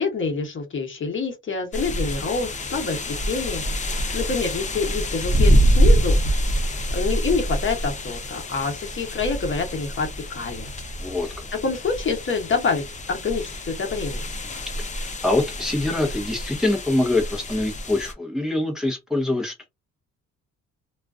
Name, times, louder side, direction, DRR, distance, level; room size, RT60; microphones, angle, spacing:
voice 1, 0.0-3.0 3.2-6.2 6.9-10.7 11.6-14.2, left 4 dB, 40° left, 1.1 m, -27 dB
sound 1, 1.7-18.1, equal, 25° left, 0.6 m, -25 dB
voice 2, 11.0-11.4 14.8-19.7, left 2 dB, ahead, 0.8 m, -24 dB
2.4 x 2.3 x 2.4 m
cardioid pair, 90°, 30 cm